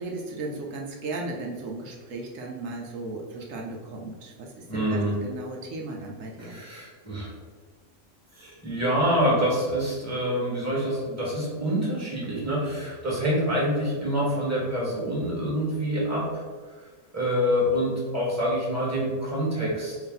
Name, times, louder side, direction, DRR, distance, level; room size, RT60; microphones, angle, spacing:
voice 1, 0.0-6.6, right 2 dB, 80° right, 0 dB, 1.0 m, -36 dB
voice 2, 4.7-5.1 6.4-7.3 8.3-16.4 17.1-20.0, equal, 15° right, -5 dB, 1.3 m, -26 dB
5.0 x 2.7 x 3.8 m, 1.5 s
omnidirectional pair, 1.4 m